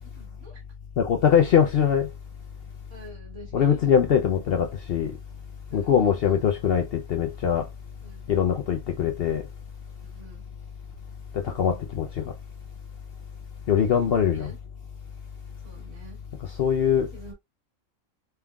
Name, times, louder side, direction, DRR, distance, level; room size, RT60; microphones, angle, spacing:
voice 1, 0.0-0.6 2.9-3.8 5.7-6.4 8.0-8.3 10.0-10.4 14.1-14.6 15.6-16.2 17.1-17.3, right 1 dB, 85° right, 2.5 m, -48 dB
voice 2, 1.0-2.1 3.5-5.2 5.7-7.7 8.3-9.5 11.3-12.3 13.7-14.5 16.4-17.1, left 8 dB, 65° left, 0.6 m, -22 dB
4.5 x 3.6 x 2.3 m
omnidirectional pair, 1.4 m